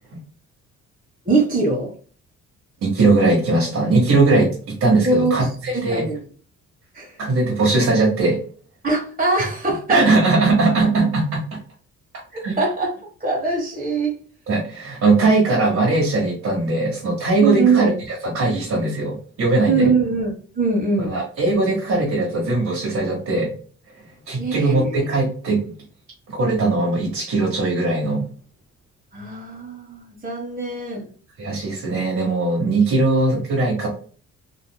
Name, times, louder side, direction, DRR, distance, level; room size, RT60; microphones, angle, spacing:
voice 1, 1.2-1.9 5.0-5.3 5.7-6.2 6.9-7.2 8.8-10.1 12.3-12.9 13.2-14.1 17.4-18.0 19.7-20.3 20.5-21.1 24.4-25.0 29.1-31.1, right 3 dB, 30° right, -2 dB, 1.4 m, -22 dB
voice 2, 2.8-4.5 4.8-6.0 7.2-8.4 9.9-11.6 12.4-12.6 14.5-17.9 18.2-19.9 21.0-23.5 24.3-25.6 26.3-28.3 31.4-33.9, right 3 dB, 60° right, -5 dB, 1.7 m, -19 dB
4.1 x 3.0 x 2.3 m, 0.42 s
cardioid pair, 90°, 30 cm